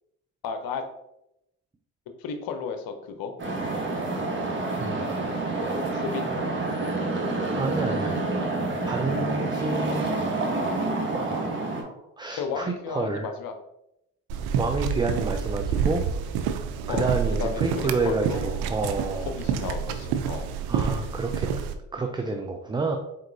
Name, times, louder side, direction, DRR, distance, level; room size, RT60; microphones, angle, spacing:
voice 1, 0.4-0.9 2.2-3.3 5.9-6.2 12.4-13.5 16.9-17.1 17.4-18.6 19.4-20.5, left 6 dB, 65° left, 7 dB, 0.8 m, -33 dB
sound 1, 3.4-11.8, right 2 dB, 30° right, 1.3 m, -28 dB
voice 2, 7.5-8.3 8.9-10.1 11.1-13.3 14.5-16.1 16.9-19.3 20.7-21.5 21.9-23.0, right 3 dB, 10° right, 4 dB, 0.4 m, -29 dB
sound 2, 14.3-21.7, right 7 dB, 75° right, 0.6 m, -28 dB
4.4 x 3.8 x 2.7 m, 0.83 s
supercardioid pair, 65°, 38 cm